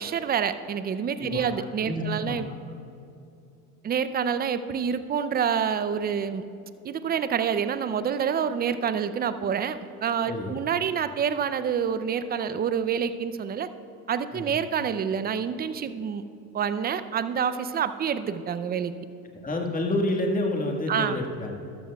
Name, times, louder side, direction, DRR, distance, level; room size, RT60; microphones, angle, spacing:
voice 1, 0.0-2.5 3.8-6.4 6.8-13.7 14.1-16.2 16.5-19.0 20.9-21.2, right 7 dB, 25° right, 12 dB, 0.5 m, -27 dB
voice 2, 1.2-2.5 10.3-10.6 14.3-14.5 19.4-21.5, left 1 dB, 20° left, 1 dB, 1.6 m, -29 dB
13.5 x 12.5 x 2.3 m, 2.7 s
supercardioid pair, 95°, 39 cm